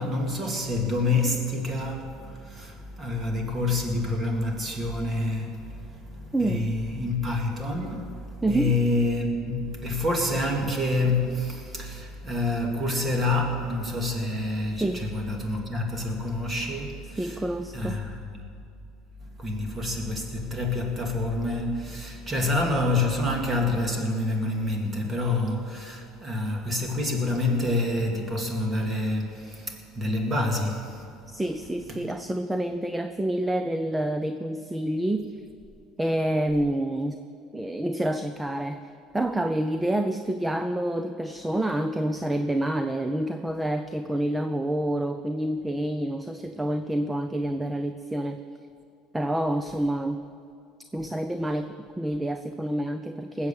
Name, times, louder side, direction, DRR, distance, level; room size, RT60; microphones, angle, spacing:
voice 1, 0.0-17.4 17.7-18.2 19.4-31.0 31.9-32.0, left 2 dB, 25° right, 2 dB, 2.4 m, -27 dB
voice 2, 6.3-6.7 8.4-8.7 10.6-10.7 14.8-15.1 17.2-18.0 31.3-35.3 36.0-37.2 37.5-38.8 39.1-48.4 49.1-50.2 50.9-53.5, right 1 dB, 10° right, 9 dB, 0.5 m, -28 dB
19.5 x 8.0 x 7.3 m, 2.5 s
cardioid pair, 130°, 0 cm